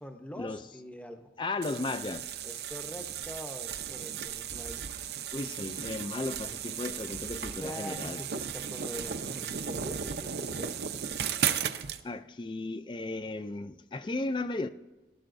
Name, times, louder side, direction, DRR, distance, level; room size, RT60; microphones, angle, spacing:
voice 1, 0.0-1.3 2.4-5.0 7.6-10.8, equal, 10° left, 0.7 m, -44 dB
voice 2, 1.4-2.3 5.3-8.2 12.0-14.7, left 2 dB, 25° left, 0.3 m, -35 dB
sound 1, 1.6-12.0, right 8 dB, 70° right, 0.6 m, -35 dB
18.5 x 12.0 x 2.6 m
head